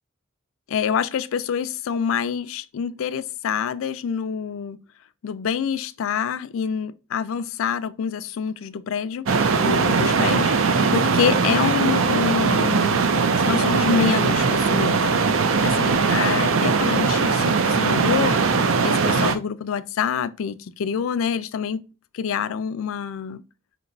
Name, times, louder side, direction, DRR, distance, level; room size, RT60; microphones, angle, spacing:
voice 1, 0.7-4.8 5.2-9.3 9.6-18.4 18.8-21.8 22.1-23.4, left 7 dB, 75° left, 0.4 m, -26 dB
sound 1, 9.3-19.4, right 4 dB, 75° right, 0.5 m, -20 dB
5.1 x 2.9 x 2.5 m
head